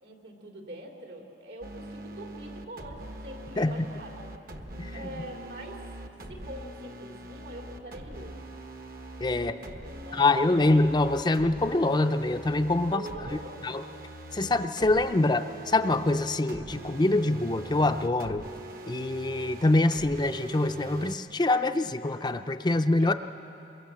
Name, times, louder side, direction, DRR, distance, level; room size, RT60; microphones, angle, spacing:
voice 1, 0.0-4.3 4.9-5.8 6.3-8.4 9.4-10.7 12.9-13.6 23.0-23.2, right 1 dB, 75° right, 1 dB, 3.2 m, -44 dB
sound 1, 1.6-21.2, right 1 dB, 55° right, 1.3 m, -43 dB
voice 2, 9.2-9.6 10.1-13.0 13.6-13.8 14.3-18.4 18.9-23.1, left 2 dB, 25° left, 8 dB, 0.5 m, -25 dB
23.0 x 22.5 x 7.6 m, 2.9 s
head